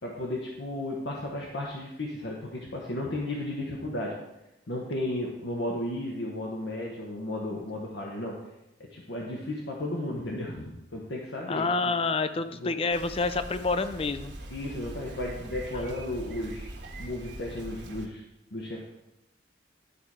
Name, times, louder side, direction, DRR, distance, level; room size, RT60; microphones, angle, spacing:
voice 1, 0.0-4.2 4.7-8.4 8.8-11.7 12.6-12.7 14.5-16.7 17.0-18.2 18.5-18.9, left 1 dB, 75° left, -2 dB, 1.1 m, -34 dB
voice 2, 11.5-14.3, left 3 dB, 30° left, 11 dB, 0.4 m, -28 dB
Bicycle, 12.9-18.1, right 1 dB, 70° right, 1.3 m, -42 dB
11.0 x 4.3 x 4.7 m, 0.92 s
head